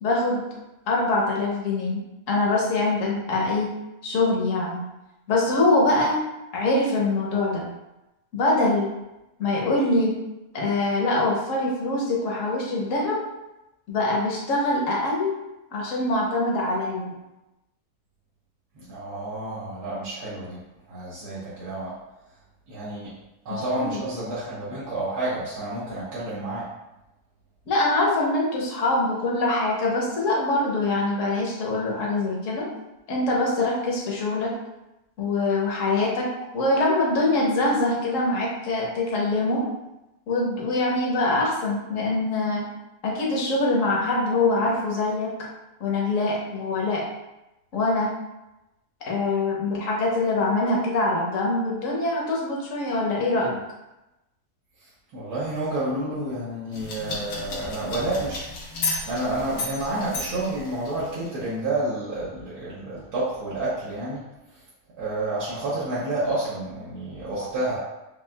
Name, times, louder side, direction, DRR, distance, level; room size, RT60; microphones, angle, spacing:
voice 1, 0.0-0.5 0.9-2.0 2.3-3.7 4.0-4.9 5.3-6.2 6.5-7.7 8.3-8.9 9.4-10.2 10.5-13.2 13.9-15.3 15.7-17.1 23.5-24.0 27.7-32.7 33.1-34.5 35.2-36.3 36.5-39.7 40.3-42.7 43.0-45.5 45.8-47.0 47.7-48.1 49.1-53.6, left 2 dB, 60° left, -3 dB, 1.1 m, -24 dB
voice 2, 18.7-20.6 20.9-22.0 22.7-23.1 23.4-26.7 54.8-64.2 64.5-64.6 65.0-67.8, right 2 dB, 75° right, -9 dB, 1.4 m, -30 dB
sound 1, 56.7-61.3, left 3 dB, 90° left, 1.5 m, -33 dB
5.4 x 2.4 x 2.2 m, 0.96 s
omnidirectional pair, 1.7 m